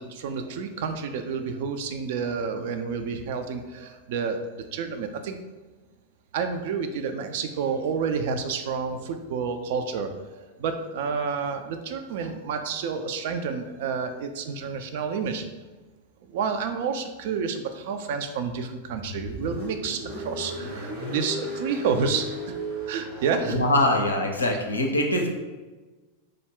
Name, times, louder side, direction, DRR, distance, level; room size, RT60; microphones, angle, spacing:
voice 1, 0.0-5.4 6.3-15.4 16.2-22.6 22.9-23.6, right 5 dB, 50° right, 7 dB, 0.3 m, -29 dB
Car, 18.9-24.3, right 1 dB, 70° right, 1.1 m, -35 dB
voice 2, 23.5-25.3, left 1 dB, 80° left, 2 dB, 0.5 m, -23 dB
3.3 x 2.1 x 3.7 m, 1.2 s
figure-of-eight pair, 90°, 0 cm